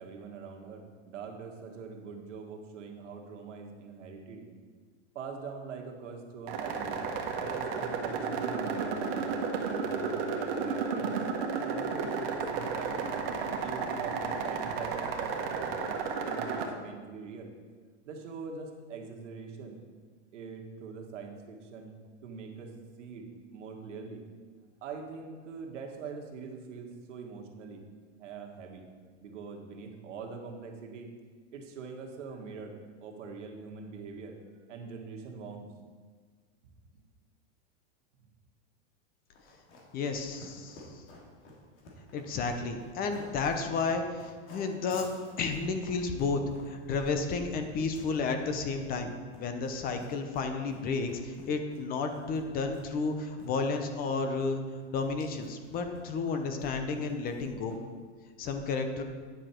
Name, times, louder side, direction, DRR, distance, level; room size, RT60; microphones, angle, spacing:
voice 1, 0.0-4.6 5.1-7.0 7.4-11.2 11.5-13.1 13.6-15.7 16.2-17.5 18.0-19.8 20.3-22.0 22.2-24.2 24.8-27.8 28.2-28.8 29.2-31.1 31.5-32.7 33.0-34.4 34.7-35.7, right 5 dB, 85° right, 2 dB, 1.7 m, -43 dB
sound 1, 6.5-16.7, right 5 dB, 55° right, 1.4 m, -33 dB
Run, 39.3-58.0, left 1 dB, 70° left, 2.8 m, -52 dB
voice 2, 39.9-40.9 42.1-45.1 45.4-46.4 46.7-49.1 49.4-54.6 54.9-57.8 58.4-59.0, left 4 dB, 25° left, 6 dB, 0.7 m, -32 dB
10.0 x 7.2 x 4.5 m, 1.5 s
supercardioid pair, 150°, 36 cm